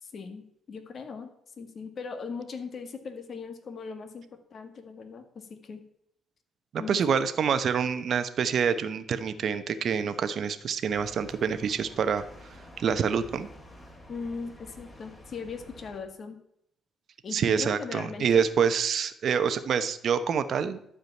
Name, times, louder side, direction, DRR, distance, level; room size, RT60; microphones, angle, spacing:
voice 1, 0.0-1.3 1.6-5.8 6.8-7.2 14.1-16.4 17.2-18.5, left 5 dB, 50° left, 7 dB, 1.9 m, -39 dB
voice 2, 6.7-13.5 17.3-20.8, right 7 dB, 60° right, 11 dB, 1.0 m, -27 dB
sound 1, 10.9-16.0, left 1 dB, 20° left, 3.2 m, -49 dB
12.0 x 5.1 x 8.3 m, 0.74 s
cardioid pair, 90°, 0 cm